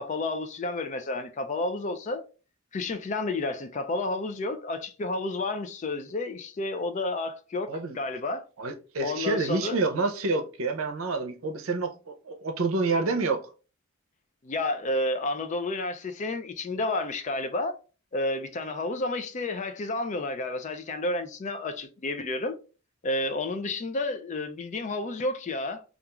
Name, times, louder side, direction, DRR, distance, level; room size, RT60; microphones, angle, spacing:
voice 1, 0.0-2.2 2.7-8.4 9.0-9.8 14.4-17.8 18.1-22.5 23.0-25.8, left 2 dB, 35° left, 0.4 m, -31 dB
voice 2, 8.6-13.5, right 3 dB, 80° right, 0.6 m, -28 dB
2.4 x 2.3 x 2.9 m
head